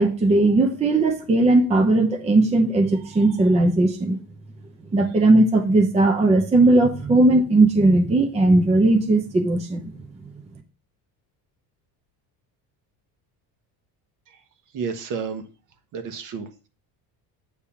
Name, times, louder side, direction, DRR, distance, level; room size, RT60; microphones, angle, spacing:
voice 1, 0.0-4.2 4.9-9.9, right 2 dB, 15° right, 5 dB, 0.6 m, -18 dB
voice 2, 14.7-15.4 15.9-16.5, right 6 dB, 50° right, 8 dB, 1.2 m, -30 dB
8.7 x 3.3 x 5.7 m, 0.34 s
cardioid pair, 145°, 40 cm